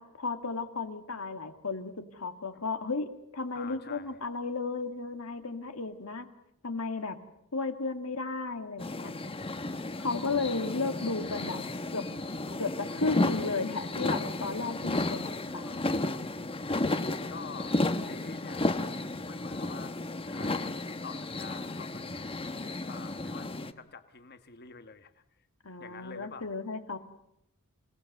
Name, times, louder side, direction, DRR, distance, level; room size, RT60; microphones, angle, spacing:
voice 1, 0.0-6.3 6.6-7.2 7.5-9.1 10.0-11.6 11.9-12.1 12.6-15.3 15.5-16.0 25.6-27.0, left 3 dB, 75° left, 7 dB, 2.2 m, -34 dB
voice 2, 3.5-4.2 15.0-15.5 17.3-17.8 18.0-18.8 19.3-19.9 20.2-22.2 22.9-23.5 23.8-25.2 25.8-26.5, left 5 dB, 45° left, 9 dB, 1.3 m, -47 dB
sound 1, 8.8-23.7, left 2 dB, 25° left, 1.1 m, -33 dB
27.5 x 19.0 x 8.0 m, 0.80 s
head